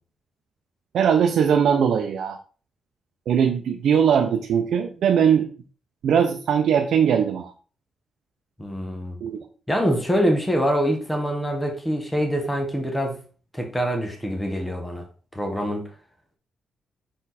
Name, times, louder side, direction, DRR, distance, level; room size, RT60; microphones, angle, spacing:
voice 1, 0.9-2.4 3.3-5.5 6.0-7.5 9.2-9.4, right 7 dB, 70° right, 4 dB, 0.6 m, -20 dB
voice 2, 8.6-9.2 9.7-13.1 13.5-15.0 15.3-15.8, equal, 10° left, 2 dB, 1.2 m, -24 dB
6.0 x 4.4 x 4.1 m, 0.39 s
wide cardioid pair, 160°, 0 cm